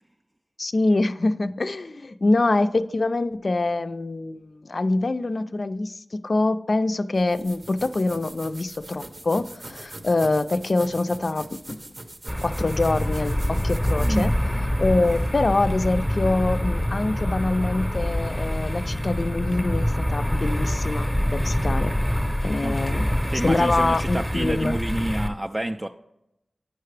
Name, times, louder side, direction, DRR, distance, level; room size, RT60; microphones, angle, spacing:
voice 1, 0.6-11.8 12.4-14.3 14.8-22.0 22.4-23.1 23.3-24.8, left 2 dB, 55° left, 11 dB, 0.4 m, -25 dB
sound 1, 7.1-15.4, right 2 dB, 50° right, 0.8 m, -42 dB
sound 2, 12.3-25.3, equal, ahead, 0.8 m, -25 dB
voice 2, 14.0-14.3 22.6-22.7 23.3-25.9, right 1 dB, 25° right, 5 dB, 0.3 m, -28 dB
9.3 x 5.7 x 3.2 m, 0.84 s
wide cardioid pair, 80°, 0 cm